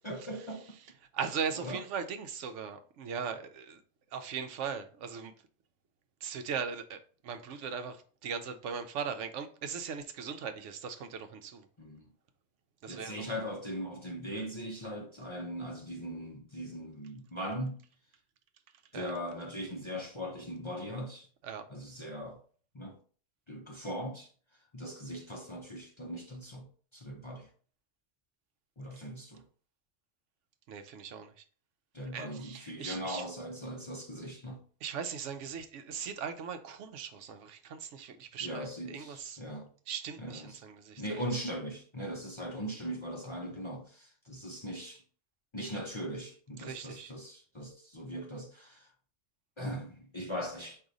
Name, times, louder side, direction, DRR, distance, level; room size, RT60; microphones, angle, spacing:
voice 1, 0.0-0.7 1.5-1.8 11.8-12.1 12.9-17.8 18.9-21.3 21.7-22.4 22.7-23.0 23.5-24.3 24.7-26.7 26.9-27.5 28.8-29.4 31.9-34.6 38.4-39.7 40.2-40.6 41.0-45.0 45.5-48.9 49.6-50.8, equal, 30° left, 0.6 m, -40 dB
voice 2, 1.1-3.8 4.1-5.3 6.2-11.7 12.8-13.3 18.9-19.1 21.4-21.7 30.7-31.4 32.1-33.2 34.8-39.4 39.9-41.2 46.6-47.1, right 6 dB, 80° right, 0.9 m, -39 dB
4.8 x 2.7 x 3.9 m
omnidirectional pair, 1.3 m